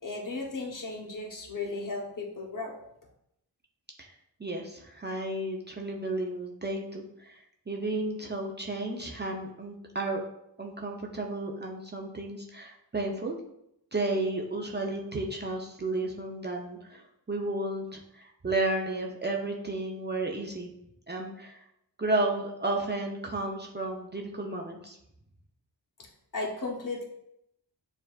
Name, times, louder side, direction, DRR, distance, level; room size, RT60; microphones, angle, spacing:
voice 1, 0.0-2.7 26.0-26.1 26.3-27.0, left 3 dB, 45° left, -1 dB, 1.0 m, -35 dB
voice 2, 4.4-10.2 10.6-13.4 13.9-20.7 21.1-21.6 22.0-25.0, right 2 dB, 25° right, 0 dB, 0.5 m, -33 dB
6.3 x 2.5 x 2.3 m, 0.79 s
cardioid pair, 65°, 44 cm